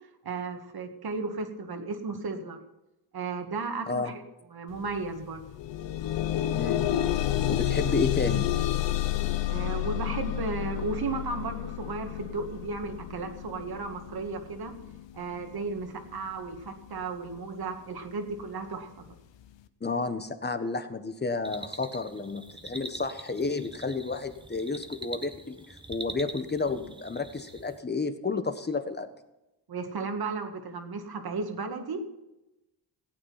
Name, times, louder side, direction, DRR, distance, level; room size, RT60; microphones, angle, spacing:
voice 1, 0.2-2.6 3.1-4.2 4.5-5.5 9.5-14.7 15.1-19.1 29.7-32.0, right 4 dB, 55° right, 5 dB, 2.1 m, -34 dB
sound 1, 4.7-4.9 5.2-16.3 17.0-17.1 17.6-17.7, left 12 dB, 80° left, 0.9 m, -30 dB
voice 2, 6.5-6.9 7.5-8.5 19.8-29.1, left 4 dB, 25° left, 9 dB, 1.4 m, -31 dB
sound 2, 21.4-27.8, right 2 dB, 10° right, 1.1 m, -44 dB
16.5 x 8.8 x 5.8 m, 0.96 s
cardioid pair, 80°, 43 cm